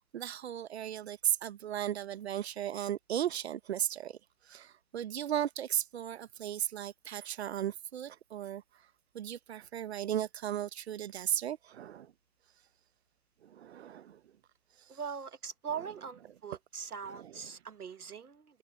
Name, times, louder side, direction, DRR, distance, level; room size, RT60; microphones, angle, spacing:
voice 1, 0.1-4.2 4.4-8.6 9.1-12.1 13.4-14.2 15.8-15.9 17.0-17.5, right 10 dB, 45° right, 1.2 m, -36 dB
voice 2, 14.9-18.4, right 6 dB, 70° right, 1.4 m, -41 dB
figure-of-eight pair, 130°, 46 cm